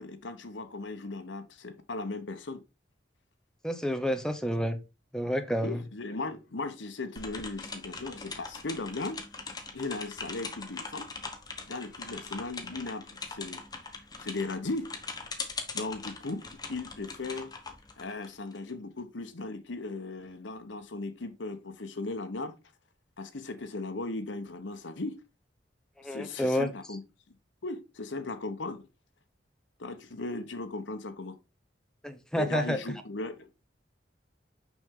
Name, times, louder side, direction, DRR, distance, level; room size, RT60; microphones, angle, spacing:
voice 1, 0.0-2.6 5.6-9.2 9.7-11.1 11.7-13.6 14.2-14.9 15.7-17.5 18.0-22.5 23.2-25.2 26.0-27.0 27.3-27.4 27.6-28.8 29.8-31.4 32.3-33.6, left 2 dB, 85° left, 1.0 m, -37 dB
voice 2, 3.6-4.8 5.1-5.8 26.0-26.7 32.0-32.8, equal, 5° left, 0.8 m, -29 dB
sound 1, 7.2-18.7, left 4 dB, 20° left, 1.1 m, -41 dB
6.0 x 5.5 x 3.7 m
head